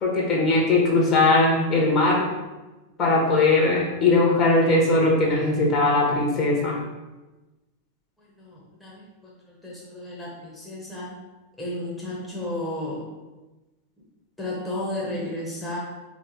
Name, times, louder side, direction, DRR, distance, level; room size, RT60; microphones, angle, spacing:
voice 1, 0.0-2.3 3.0-6.8, left 2 dB, 30° left, -2 dB, 1.3 m, -20 dB
voice 2, 8.4-9.3 9.6-11.2 11.6-13.0 14.4-15.8, left 1 dB, 5° left, -6 dB, 1.1 m, -33 dB
4.2 x 3.2 x 3.8 m, 1.1 s
figure-of-eight pair, 90°, 0 cm